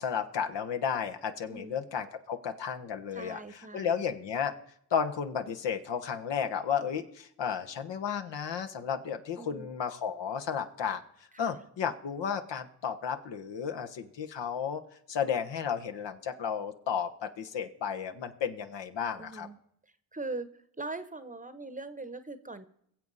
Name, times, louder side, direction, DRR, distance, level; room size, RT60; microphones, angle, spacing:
voice 1, 0.0-3.4 3.7-4.5 4.9-11.0 11.4-14.8 15.1-19.5, left 7 dB, 60° left, 6 dB, 1.3 m, -33 dB
voice 2, 1.5-1.8 3.1-4.1 9.4-9.7 11.3-11.6 19.2-19.6 20.1-22.6, right 3 dB, 15° right, 12 dB, 1.1 m, -41 dB
22.0 x 7.5 x 4.1 m, 0.72 s
supercardioid pair, 55°, 48 cm